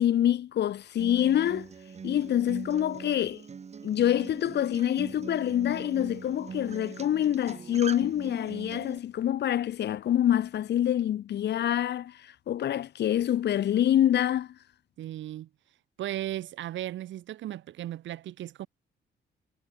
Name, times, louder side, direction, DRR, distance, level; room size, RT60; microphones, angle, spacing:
voice 1, 0.0-1.7 2.0-3.4 3.8-14.5, left 11 dB, 60° left, 0.8 m, -26 dB
Acoustic guitar, 1.0-9.0, right 6 dB, 35° right, 0.9 m, -42 dB
voice 2, 15.0-15.5 16.0-18.7, right 13 dB, 70° right, 1.0 m, -36 dB
cardioid pair, 90°, 20 cm